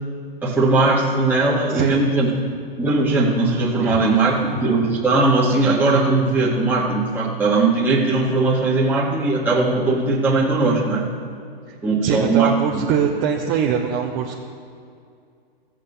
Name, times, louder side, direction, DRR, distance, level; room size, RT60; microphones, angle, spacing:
voice 1, 0.4-2.3 2.8-11.1 11.8-12.9, right 3 dB, 5° right, -6 dB, 2.0 m, -19 dB
voice 2, 12.0-14.4, right 8 dB, 35° right, -1 dB, 1.1 m, -22 dB
14.5 x 7.7 x 5.7 m, 2.3 s
hypercardioid pair, 120°, 30 cm